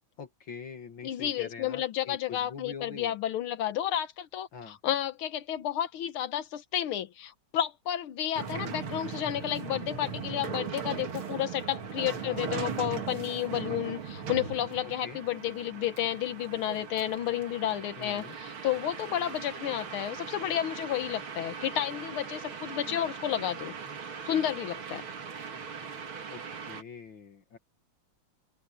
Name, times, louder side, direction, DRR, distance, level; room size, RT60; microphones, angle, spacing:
voice 1, 0.2-3.1 4.5-4.8 12.2-12.6 14.8-15.2 18.0-18.3 26.3-27.6, left 6 dB, 65° left, 2.6 m, -44 dB
voice 2, 1.0-23.7 24.2-25.0, left 11 dB, 85° left, 1.8 m, -31 dB
sound 1, 8.4-26.8, right 6 dB, 75° right, 2.9 m, -39 dB
open air
omnidirectional pair, 2.3 m